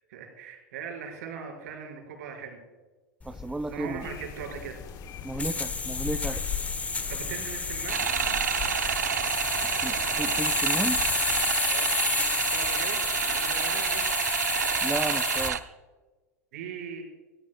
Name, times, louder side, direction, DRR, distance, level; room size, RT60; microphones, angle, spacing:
voice 1, 0.1-2.6 3.7-4.8 6.9-8.1 11.7-14.1 16.5-17.0, right 6 dB, 70° right, 5.0 m, -40 dB
sound 1, 3.2-15.6, left 4 dB, 15° left, 1.1 m, -31 dB
voice 2, 3.3-4.1 5.2-6.4 9.8-11.0 14.8-15.7, right 2 dB, 5° right, 0.5 m, -33 dB
sound 2, 4.0-11.5, left 9 dB, 40° left, 1.0 m, -39 dB
sound 3, 7.9-15.6, right 8 dB, 90° right, 0.7 m, -28 dB
19.5 x 15.5 x 2.2 m
hypercardioid pair, 95°, 9 cm